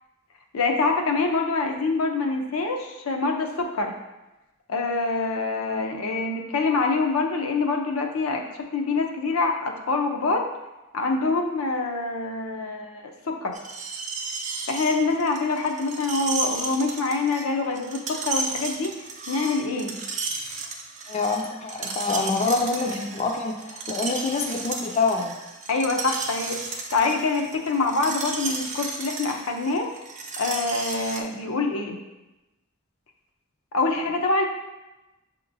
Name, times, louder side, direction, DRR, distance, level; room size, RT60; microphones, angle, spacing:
voice 1, 0.5-3.9 4.7-10.5 10.9-13.6 14.7-19.0 19.3-19.9 25.7-29.9 30.4-32.0 33.7-34.4, left 3 dB, 90° left, 3 dB, 0.6 m, -25 dB
Screech, 13.5-31.2, right 4 dB, 35° right, 0.5 m, -33 dB
voice 2, 21.1-25.3, left 4 dB, 30° left, 3 dB, 0.3 m, -26 dB
6.8 x 2.9 x 2.6 m, 1.0 s
head